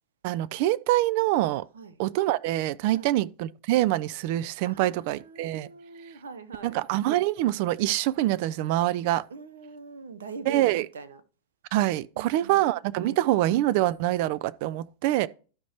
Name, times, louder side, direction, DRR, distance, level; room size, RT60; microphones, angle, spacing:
voice 1, 0.2-1.6 2.0-5.7 6.6-9.2 10.5-10.9 11.7-15.3, right 15 dB, 45° right, 0.3 m, -25 dB
voice 2, 4.7-6.8 9.3-11.2 12.2-12.7 13.0-13.2, right 5 dB, 65° right, 0.8 m, -42 dB
12.0 x 5.0 x 2.9 m
figure-of-eight pair, 90°, 0 cm